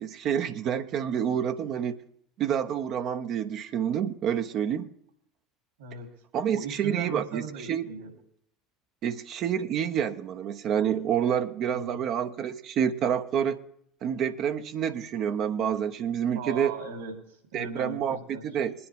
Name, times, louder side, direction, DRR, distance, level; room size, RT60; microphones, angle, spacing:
voice 1, 0.0-1.9 2.4-4.9 6.3-7.9 9.0-13.6 14.0-16.7 17.5-18.2 18.4-18.7, right 8 dB, 50° right, 6 dB, 0.8 m, -28 dB
voice 2, 5.8-6.1 6.5-8.1 11.7-12.0 16.3-18.5, right 4 dB, 75° right, 5 dB, 3.1 m, -38 dB
21.0 x 9.8 x 3.6 m, 0.72 s
hypercardioid pair, 70°, 0 cm